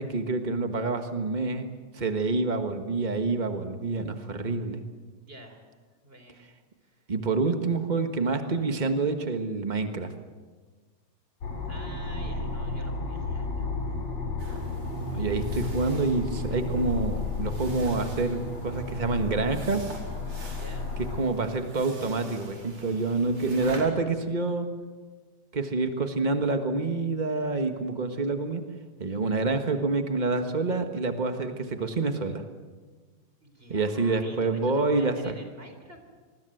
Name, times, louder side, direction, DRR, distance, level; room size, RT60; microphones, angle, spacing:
voice 1, 0.0-1.7 1.9-4.8 7.1-10.1 15.1-19.9 21.2-24.7 25.5-28.6 29.0-32.4 33.7-35.3, right 3 dB, 90° right, 6 dB, 0.4 m, -27 dB
voice 2, 5.3-5.7 6.0-6.5 6.8-7.0 11.6-14.0 20.5-20.9 33.4-36.0, right 1 dB, 20° right, 6 dB, 3.7 m, -48 dB
sound 1, 11.4-21.2, left 3 dB, 60° left, 4.7 m, -32 dB
sound 2, 14.4-23.8, right 2 dB, 55° right, 5.9 m, -46 dB
27.0 x 21.0 x 7.9 m, 1.4 s
omnidirectional pair, 3.4 m